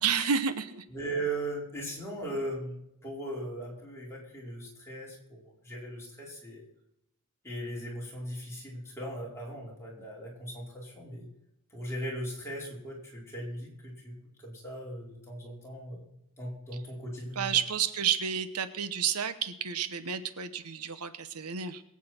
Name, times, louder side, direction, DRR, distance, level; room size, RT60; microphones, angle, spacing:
voice 1, 0.0-0.8 17.3-21.8, right 7 dB, 90° right, 11 dB, 1.0 m, -30 dB
voice 2, 0.9-2.8 3.0-6.6 7.4-11.3 11.7-14.1 14.4-16.1 16.4-17.6, right 1 dB, 10° left, -5 dB, 4.8 m, -38 dB
22.0 x 8.6 x 4.4 m, 0.84 s
head